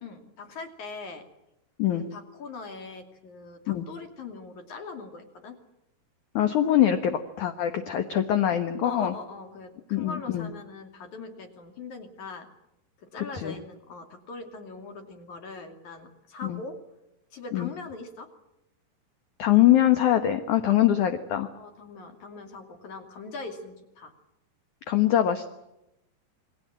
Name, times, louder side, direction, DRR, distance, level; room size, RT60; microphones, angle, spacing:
voice 1, 0.0-1.3 1.9-5.6 8.5-12.5 13.0-16.8 17.3-18.3 20.7-20.8 21.5-24.1, left 3 dB, 50° left, 5 dB, 3.7 m, -41 dB
voice 2, 6.3-9.1 9.9-10.5 13.4-13.6 16.4-16.6 17.5-17.7 19.4-21.5 24.9-25.5, left 12 dB, 65° left, 8 dB, 2.1 m, -23 dB
29.0 x 22.5 x 7.6 m, 0.88 s
omnidirectional pair, 5.0 m